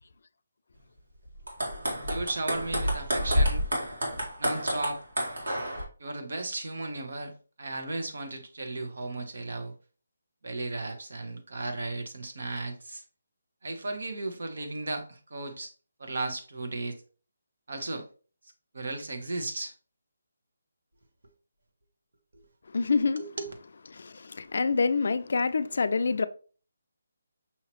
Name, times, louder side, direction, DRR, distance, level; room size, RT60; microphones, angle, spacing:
sound 1, 1.3-5.8, equal, 85° right, 2.0 m, -29 dB
voice 1, 2.1-3.7 4.4-5.0 6.0-9.7 10.4-13.0 13.6-15.7 16.0-17.0 17.7-18.1 18.7-19.7 23.2-23.5, right 2 dB, 65° right, 1.1 m, -35 dB
voice 2, 22.7-23.5 23.9-26.2, left 4 dB, 55° left, 0.4 m, -27 dB
5.6 x 2.8 x 3.0 m
hypercardioid pair, 170°, 0 cm